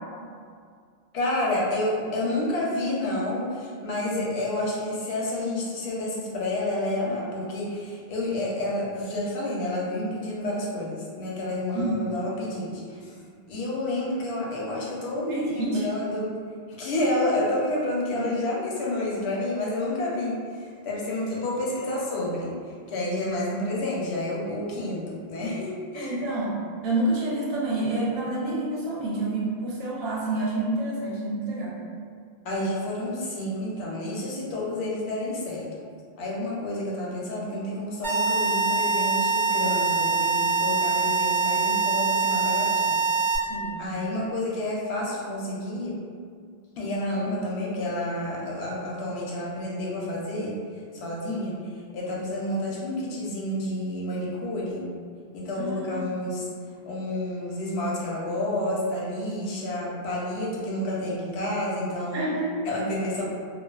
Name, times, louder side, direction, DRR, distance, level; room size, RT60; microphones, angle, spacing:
voice 1, 1.1-13.2 13.5-16.3 16.8-26.2 32.4-35.7 36.2-43.0 43.8-46.0 46.8-50.6 50.9-51.5 51.9-54.9 55.3-56.5 56.8-62.2 62.6-63.3, left 1 dB, 90° left, -4 dB, 0.9 m, -29 dB
voice 2, 15.3-15.9 18.1-18.2 25.9-26.6 26.8-31.7 43.5-43.8 51.3-51.4 55.6-56.1 62.1-62.6, right 2 dB, 75° right, -5 dB, 0.8 m, -28 dB
sound 1, 38.0-43.4, right 4 dB, 35° right, 0.3 m, -24 dB
2.4 x 2.3 x 2.3 m, 2.1 s
omnidirectional pair, 1.0 m